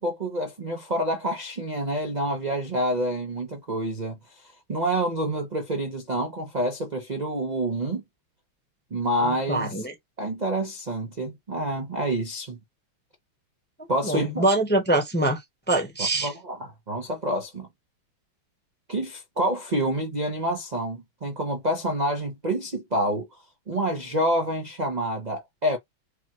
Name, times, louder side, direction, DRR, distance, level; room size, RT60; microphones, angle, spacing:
voice 1, 0.0-8.0 8.9-9.9 10.2-12.6 13.9-14.5 16.2-17.7 18.9-23.3 23.7-25.8, right 1 dB, 85° right, 0.3 m, -28 dB
voice 2, 9.3-9.9 14.0-15.4 15.7-16.3, right 2 dB, 10° left, 0.7 m, -24 dB
5.0 x 2.3 x 2.9 m
omnidirectional pair, 2.3 m